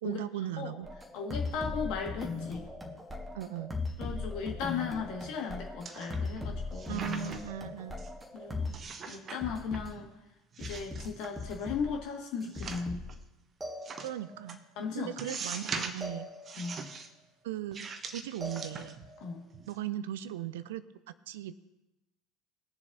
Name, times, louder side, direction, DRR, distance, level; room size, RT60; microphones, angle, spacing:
voice 1, 0.0-0.9 3.3-3.7 6.9-8.0 14.0-14.6 14.9-16.3 17.4-19.0 19.7-20.8 21.3-21.5, right 12 dB, 65° right, 14 dB, 0.5 m, -38 dB
sound 1, 0.8-8.8 9.4-9.9 10.6-12.0 12.4-13.2 13.6-14.4 16.0-16.8 18.4-19.2, left 3 dB, 10° right, 1.7 m, -39 dB
voice 2, 1.1-2.7 4.0-7.0 8.3-8.8 9.1-10.1 10.6-13.0 14.7-15.3 16.6-16.8 19.2-19.5, left 6 dB, 55° left, 2 dB, 1.8 m, -36 dB
sound 2, 5.8-6.4 6.7-7.6 8.0-8.1 8.7-9.4 9.7-10.2 10.5-11.7 12.4-13.1 13.8-14.1 14.5-14.6 15.2-16.1 16.4-17.1 17.7-19.2 19.5-19.7, right 4 dB, 30° right, 1.0 m, -41 dB
20.5 x 7.1 x 2.7 m, 1.0 s
figure-of-eight pair, 70°, 0 cm